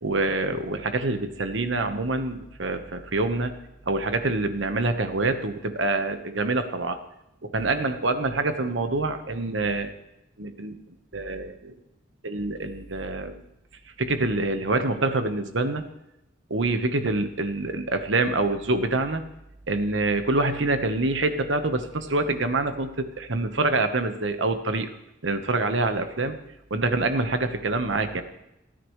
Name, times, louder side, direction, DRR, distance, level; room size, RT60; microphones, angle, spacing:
voice 1, 0.0-3.6 3.9-7.0 7.4-9.9 10.4-10.8 11.1-11.7 12.2-13.3 14.0-15.8 16.5-19.2 19.7-24.9 25.2-26.4 26.7-28.2, right 2 dB, 75° right, 8 dB, 1.2 m, -26 dB
29.5 x 10.0 x 3.2 m, 0.88 s
head